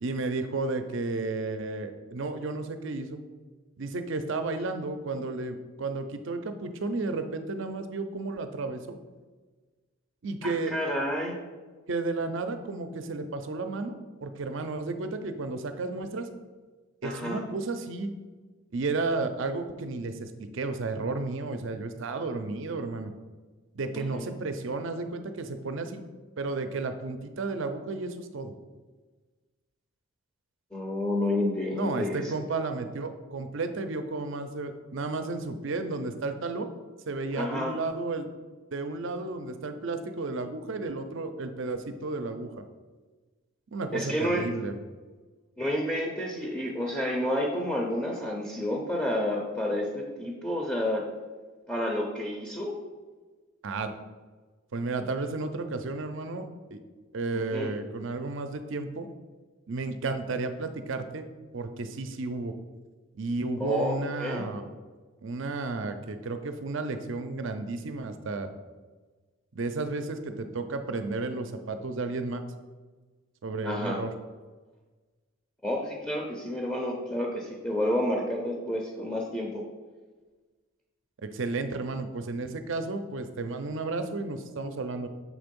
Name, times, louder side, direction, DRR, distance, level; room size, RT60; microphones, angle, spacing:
voice 1, 0.0-3.2 3.8-9.0 10.2-10.7 11.9-13.9 14.2-16.3 17.0-18.1 18.7-23.1 23.7-26.0 26.4-28.5 31.7-36.7 37.1-38.3 38.7-42.6 43.7-44.7 53.6-53.9 54.7-56.8 57.1-59.1 59.7-61.2 61.5-62.5 63.1-64.7 65.2-68.5 69.6-72.4 73.4-74.1 81.2-85.1, right 3 dB, 60° right, 8 dB, 0.5 m, -32 dB
voice 2, 10.4-11.3 17.0-17.4 23.9-24.3 30.7-32.3 37.3-37.7 43.9-44.5 45.6-51.0 51.7-52.7 57.3-57.7 63.6-64.5 73.6-74.0 75.6-79.6, left 1 dB, 5° left, -1 dB, 0.6 m, -30 dB
6.2 x 3.5 x 5.2 m, 1.3 s
head